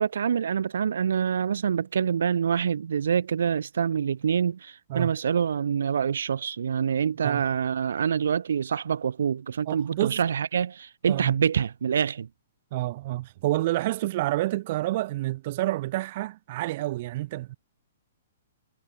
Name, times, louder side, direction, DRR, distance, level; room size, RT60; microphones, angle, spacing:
voice 1, 0.0-12.3, right 7 dB, 65° right, 1.1 m, -26 dB
voice 2, 9.7-10.2 11.1-11.4 12.7-17.6, right 17 dB, 45° right, 1.5 m, -28 dB
figure-of-eight pair, 120°, 0 cm